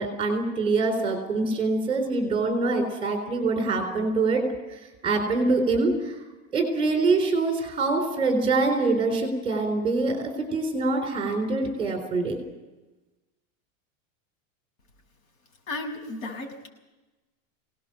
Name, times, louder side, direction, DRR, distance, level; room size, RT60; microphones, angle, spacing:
voice 1, 0.0-4.4 5.0-6.1 6.5-12.4, right 3 dB, 15° right, 4 dB, 3.7 m, -24 dB
voice 2, 15.7-16.7, left 2 dB, 75° left, 3 dB, 6.4 m, -34 dB
23.5 x 18.5 x 7.5 m, 1.1 s
supercardioid pair, 175°, 40 cm